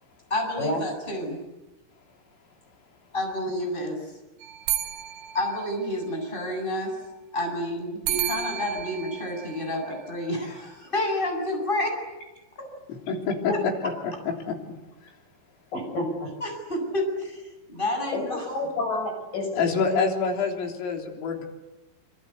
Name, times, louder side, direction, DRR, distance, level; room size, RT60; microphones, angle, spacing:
voice 1, 0.3-1.4 3.1-4.0 5.3-6.9 7.3-11.9 12.6-12.7 16.4-17.4 17.7-18.5, left 1 dB, 10° left, 3 dB, 7.3 m, -29 dB
sound 1, 4.4-6.4 8.1-10.4, right 12 dB, 70° right, 3.4 m, -33 dB
voice 2, 13.1-13.5 14.0-14.6 15.0-15.2 19.5-21.5, left 5 dB, 75° left, 2 dB, 6.2 m, -27 dB
voice 3, 15.7-16.3 18.1-19.5 19.9-20.0, left 2 dB, 40° left, 3 dB, 8.4 m, -29 dB
27.0 x 26.0 x 8.4 m, 1.1 s
omnidirectional pair, 5.9 m